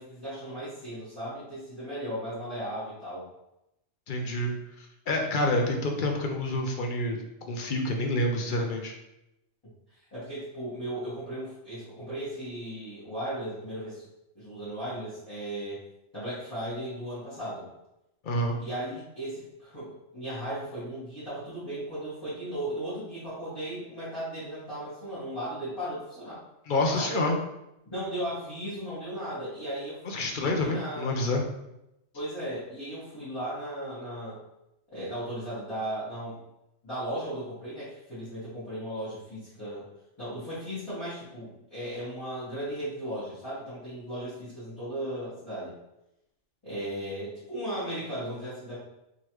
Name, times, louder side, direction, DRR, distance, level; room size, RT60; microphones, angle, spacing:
voice 1, 0.0-3.3 10.1-14.0 14.3-15.8 16.1-17.7 18.6-26.4 26.9-27.2 27.9-30.0 30.5-31.4 32.1-34.4 34.9-36.4 36.8-39.8 40.2-45.8 46.6-48.8, right 1 dB, 20° left, -14 dB, 1.6 m, -36 dB
voice 2, 4.1-4.5 5.1-7.2 7.5-8.9 18.2-18.6 26.7-27.4 30.0-31.4, left 1 dB, 55° left, 2 dB, 0.6 m, -27 dB
3.8 x 3.1 x 3.0 m, 0.88 s
omnidirectional pair, 1.3 m